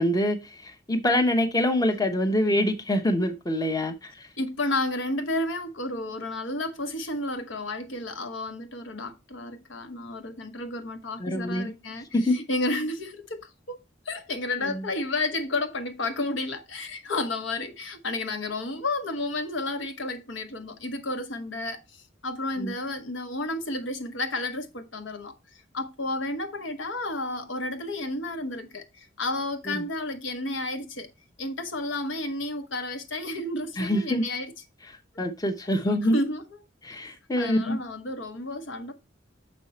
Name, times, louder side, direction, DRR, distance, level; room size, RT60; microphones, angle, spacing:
voice 1, 0.0-4.3 11.2-11.7 12.1-12.4 22.6-22.7 29.7-29.8 33.8-34.2 35.2-36.2 36.8-37.8, left 1 dB, 20° left, 0.8 m, -25 dB
voice 2, 4.4-13.8 14.0-25.3 25.7-31.1 31.4-34.5 35.9-36.4 37.4-38.9, left 2 dB, 70° left, 1.1 m, -31 dB
6.6 x 5.3 x 4.2 m
head